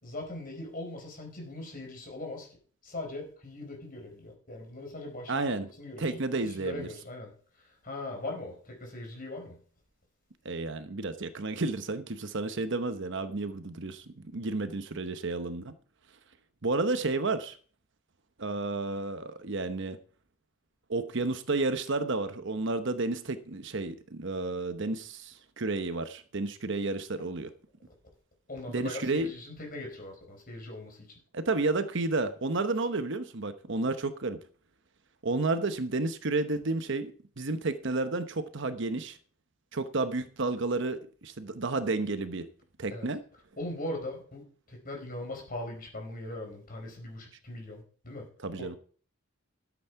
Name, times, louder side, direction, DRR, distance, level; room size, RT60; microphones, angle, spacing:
voice 1, 0.0-2.5 2.8-5.5 5.8-9.6 28.5-31.1 42.9-43.1 43.6-48.3 48.6-48.8, left 2 dB, 40° left, 4.7 m, -40 dB
voice 2, 5.3-5.7 6.0-6.9 10.4-15.7 16.6-17.5 18.4-20.0 20.9-27.5 28.7-29.3 31.3-34.4 35.2-39.2 39.7-42.5 42.8-43.2 48.4-48.7, right 3 dB, 60° right, 0.9 m, -31 dB
12.5 x 8.4 x 4.6 m
head